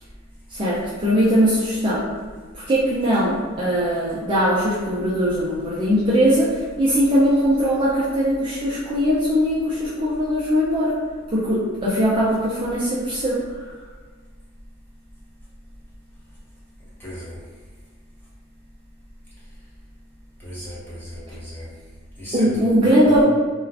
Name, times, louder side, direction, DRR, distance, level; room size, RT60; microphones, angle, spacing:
voice 1, 0.5-2.0 2.5-10.9 11.3-13.7 22.3-23.2, equal, 25° right, -8 dB, 0.4 m, -20 dB
voice 2, 17.0-17.4 20.4-21.7 22.2-23.2, equal, 10° left, -9 dB, 0.8 m, -34 dB
2.4 x 2.2 x 3.3 m, 1.4 s
head